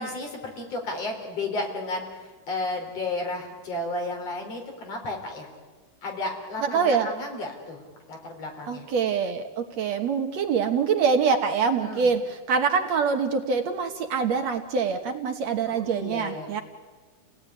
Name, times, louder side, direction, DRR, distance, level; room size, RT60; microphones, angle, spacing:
voice 1, 0.0-5.5 6.0-7.8 8.1-8.9 11.8-12.1 15.7-16.5, left 2 dB, 50° left, 2 dB, 5.3 m, -33 dB
voice 2, 6.6-7.1 8.7-16.6, right 5 dB, 60° right, 5 dB, 2.3 m, -25 dB
29.5 x 18.0 x 9.9 m, 1.4 s
omnidirectional pair, 3.6 m